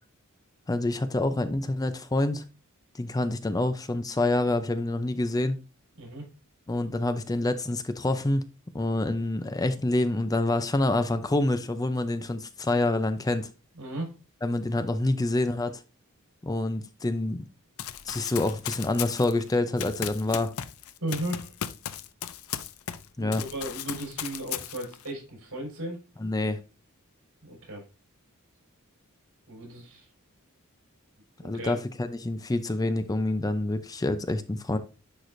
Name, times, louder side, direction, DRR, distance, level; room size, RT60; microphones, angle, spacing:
voice 1, 0.7-2.4 2.9-5.6 6.7-8.4 8.7-13.5 14.4-15.8 16.4-17.4 18.0-20.5 23.2-23.4 26.2-26.6 31.4-34.8, left 2 dB, 15° left, 0.5 m, -27 dB
voice 2, 6.0-6.3 13.8-14.1 21.0-21.5 23.2-26.0 27.4-27.8 29.5-30.1 31.4-31.8, right 1 dB, 75° right, 4.3 m, -35 dB
Run, 17.8-23.1 23.3-25.1, left 10 dB, 75° left, 0.5 m, -36 dB
10.5 x 4.8 x 2.6 m
head